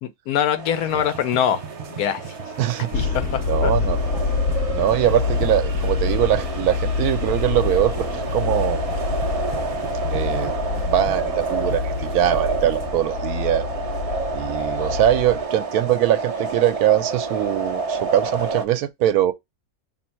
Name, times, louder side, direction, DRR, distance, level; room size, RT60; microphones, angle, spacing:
voice 1, 0.0-2.3 2.9-3.2 3.6-3.7, left 9 dB, 85° left, 1.2 m, -23 dB
sound 1, 0.6-18.6, right 4 dB, 65° right, 0.3 m, -29 dB
sound 2, 0.7-12.9, right 5 dB, 50° right, 0.8 m, -40 dB
voice 2, 2.6-3.1 3.5-4.0 4.7-8.8 10.1-10.5 10.9-13.7 14.3-19.3, right 12 dB, 80° right, 1.1 m, -22 dB
sound 3, 2.9-15.4, left 5 dB, 60° left, 0.9 m, -26 dB
2.9 x 2.6 x 4.2 m
omnidirectional pair, 1.6 m